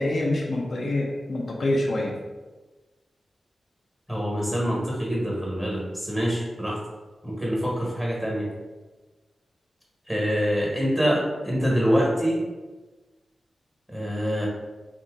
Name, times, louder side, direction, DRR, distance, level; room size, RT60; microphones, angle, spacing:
voice 1, 0.0-2.1, left 1 dB, 65° left, -2 dB, 0.5 m, -26 dB
voice 2, 4.1-6.8 7.2-8.5 10.1-12.4 13.9-14.5, equal, 10° right, -4 dB, 1.3 m, -25 dB
2.8 x 2.7 x 3.6 m, 1.2 s
wide cardioid pair, 80°, 0 cm